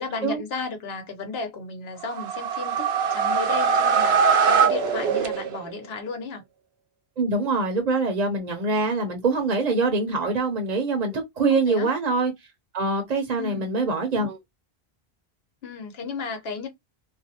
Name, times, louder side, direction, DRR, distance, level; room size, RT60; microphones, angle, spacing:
voice 1, 0.0-6.4 11.5-11.9 13.4-13.7 15.6-16.7, left 4 dB, 80° left, 1.0 m, -34 dB
sound 1, 2.0-5.8, right 6 dB, 90° right, 0.9 m, -22 dB
voice 2, 7.2-12.3 12.7-14.4, right 3 dB, 50° right, 0.7 m, -24 dB
2.5 x 2.0 x 2.7 m
omnidirectional pair, 1.0 m